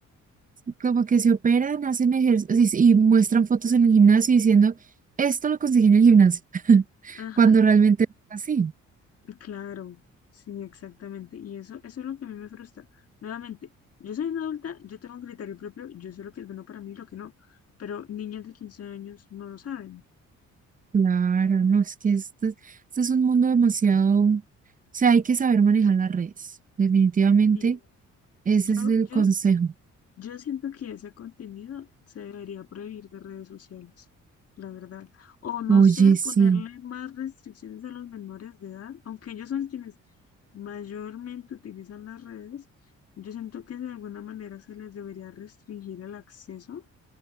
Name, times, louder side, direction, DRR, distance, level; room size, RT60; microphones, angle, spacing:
voice 1, 0.8-4.7 5.2-6.4 6.6-8.0 8.3-8.7 20.9-22.5 23.0-24.4 24.9-26.3 26.8-27.8 28.5-29.7 35.7-36.6, right 6 dB, 25° right, 0.6 m, -19 dB
voice 2, 7.2-7.6 9.2-10.0 10.3-12.9 13.2-13.7 14.0-20.0 27.5-27.7 28.6-29.3 30.2-31.9 32.1-34.1 34.6-39.9 40.5-42.6 43.2-46.8, left 9 dB, 50° left, 1.6 m, -38 dB
cardioid pair, 90°, 30 cm